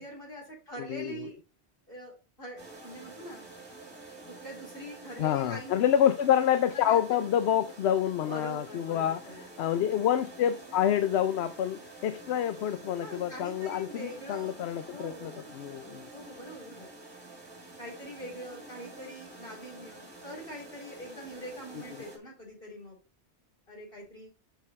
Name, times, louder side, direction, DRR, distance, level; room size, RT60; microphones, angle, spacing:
voice 1, 0.0-1.4 1.9-3.4 4.3-5.9 6.7-7.3 8.3-9.4 12.9-14.5 14.9-15.5 16.1-17.0 17.8-23.0 23.7-24.3, equal, 55° left, -3 dB, 4.2 m, -43 dB
voice 2, 0.8-1.3 5.2-16.1, left 10 dB, 70° left, 11 dB, 0.8 m, -28 dB
sound 1, 2.6-22.2, right 2 dB, 20° right, 1.9 m, -48 dB
6.6 x 5.7 x 4.1 m, 0.31 s
omnidirectional pair, 1.2 m